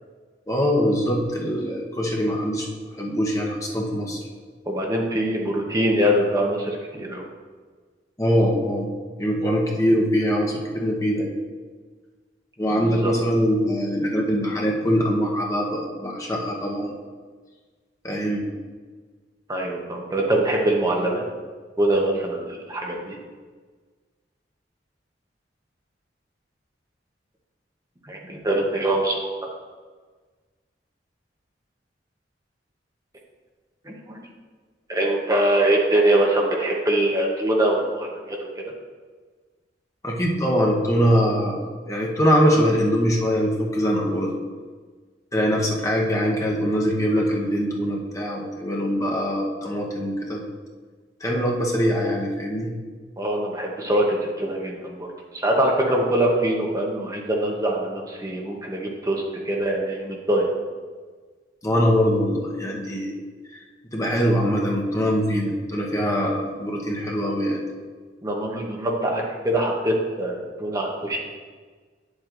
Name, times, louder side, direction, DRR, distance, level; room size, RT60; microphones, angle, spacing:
voice 1, 0.5-2.7 3.0-4.2 8.2-11.4 12.6-17.0 18.0-18.4 40.0-44.3 45.3-50.4 51.2-52.7 61.6-63.2 63.5-63.6 63.9-67.6, equal, 20° left, -2 dB, 1.0 m, -23 dB
voice 2, 4.7-7.3 12.7-13.1 19.5-21.2 21.8-23.2 28.0-29.3 33.8-34.2 34.9-38.5 53.2-55.1 55.3-60.5 68.2-71.2, right 1 dB, 20° right, -1 dB, 0.8 m, -23 dB
9.5 x 7.3 x 2.5 m, 1.4 s
head